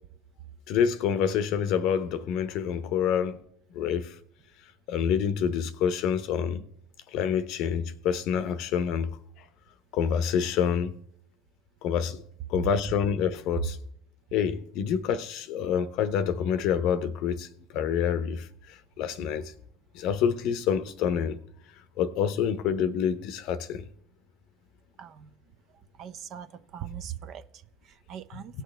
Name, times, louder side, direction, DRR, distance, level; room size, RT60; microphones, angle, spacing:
voice 1, 0.7-3.4 3.7-4.1 4.9-6.6 7.1-9.2 9.9-10.9 11.8-12.2 12.5-13.8 14.3-17.5 17.7-19.5 19.9-21.4 22.0-23.9, left 8 dB, 55° left, 0.8 m, -27 dB
voice 2, 25.0-25.3 26.0-28.6, right 9 dB, 45° right, 0.7 m, -41 dB
18.0 x 6.1 x 3.4 m
hypercardioid pair, 75°, 0 cm